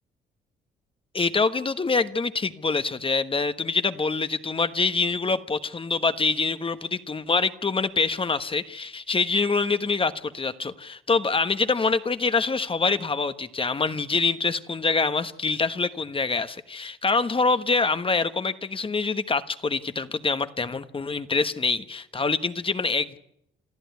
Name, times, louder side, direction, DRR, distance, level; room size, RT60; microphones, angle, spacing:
voice 1, 1.1-23.2, left 4 dB, 25° left, 11 dB, 1.3 m, -25 dB
28.0 x 13.5 x 9.5 m, 0.76 s
cardioid pair, 90°, 20 cm